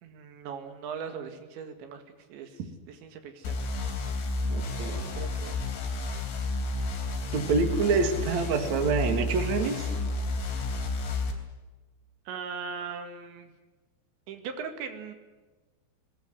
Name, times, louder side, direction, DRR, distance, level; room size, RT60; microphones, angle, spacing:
voice 1, 0.0-2.0 2.3-2.6 2.9-3.6 4.2-4.3 4.8-5.7 12.3-13.5 14.3-15.1, right 6 dB, 75° right, 7 dB, 4.2 m, -39 dB
sound 1, 3.4-11.3, left 2 dB, 80° left, 5.9 m, -31 dB
voice 2, 4.5-5.1 7.3-9.9, right 4 dB, 45° right, 6 dB, 3.1 m, -27 dB
21.0 x 19.5 x 9.6 m, 1.2 s
omnidirectional pair, 5.2 m